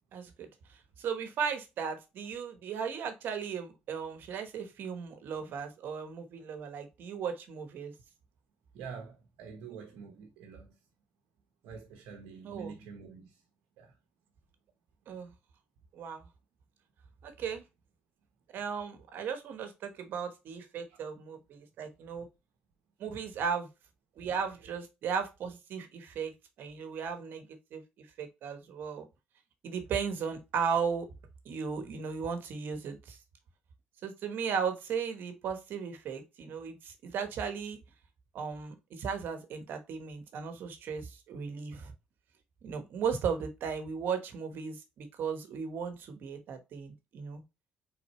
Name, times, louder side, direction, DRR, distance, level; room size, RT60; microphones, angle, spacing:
voice 1, 0.1-0.5 1.0-7.9 12.4-12.7 15.1-15.3 15.9-16.3 17.2-17.6 18.5-22.3 23.0-23.7 24.2-26.3 26.6-29.1 29.6-31.1 31.4-33.2 34.0-37.8 38.3-41.9 42.6-47.4, right 6 dB, 70° right, 1.2 m, -36 dB
voice 2, 8.7-10.8 11.6-13.4 13.8-13.9 20.9-21.0, right 6 dB, 85° right, 0.9 m, -46 dB
4.3 x 3.7 x 3.1 m
supercardioid pair, 75°, 4 cm